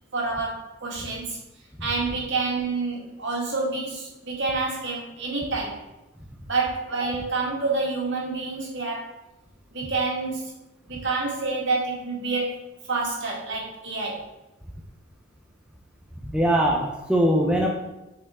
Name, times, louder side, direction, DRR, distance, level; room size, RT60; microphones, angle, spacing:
voice 1, 0.1-1.4 1.8-5.8 6.5-9.1 9.7-10.5 10.9-12.6 12.9-14.3, right 3 dB, 60° right, -3 dB, 2.1 m, -28 dB
voice 2, 16.2-17.7, right 1 dB, 5° right, -1 dB, 0.7 m, -21 dB
7.8 x 5.0 x 3.8 m, 0.98 s
head